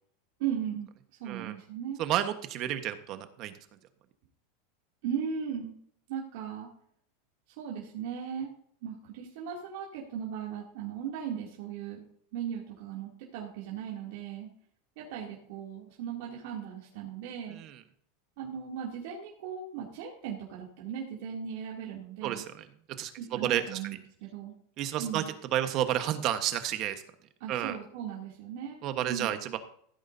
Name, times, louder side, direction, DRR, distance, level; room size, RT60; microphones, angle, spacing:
voice 1, 0.4-0.9 1.2-2.0 5.0-5.8 6.1-6.7 7.6-8.5 8.8-14.5 15.0-17.6 18.4-22.4 23.2-24.0 24.2-24.5 25.0-25.3 27.4-29.3, right 8 dB, 65° right, -4 dB, 2.7 m, -37 dB
voice 2, 2.0-3.5 17.5-17.7 22.2-22.4 23.0-23.6 24.8-25.2 25.5-27.0 27.5-27.8 28.8-29.6, right 12 dB, 45° right, 9 dB, 1.3 m, -30 dB
15.5 x 8.9 x 2.7 m, 0.63 s
supercardioid pair, 135°, 0 cm